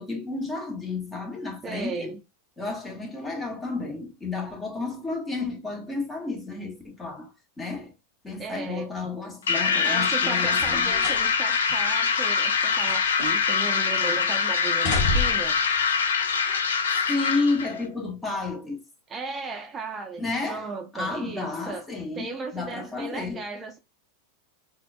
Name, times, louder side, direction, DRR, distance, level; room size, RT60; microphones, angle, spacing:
voice 1, 0.0-2.1 2.6-7.9 8.2-10.9 17.1-18.8 20.2-20.7 20.9-23.4, left 3 dB, 15° left, 1.5 m, -31 dB
voice 2, 1.6-2.2 8.4-8.9 9.8-15.6 19.1-21.8 22.2-23.8, right 4 dB, 25° right, 0.7 m, -36 dB
sound 1, 9.5-17.7, left 6 dB, 85° left, 0.6 m, -24 dB
sound 2, 10.5-11.3 11.7-11.8 12.6-13.6 13.9-14.2 14.7-15.6 16.5-16.6, left 3 dB, 55° left, 1.2 m, -30 dB
4.0 x 2.7 x 2.2 m
hypercardioid pair, 105°, 0 cm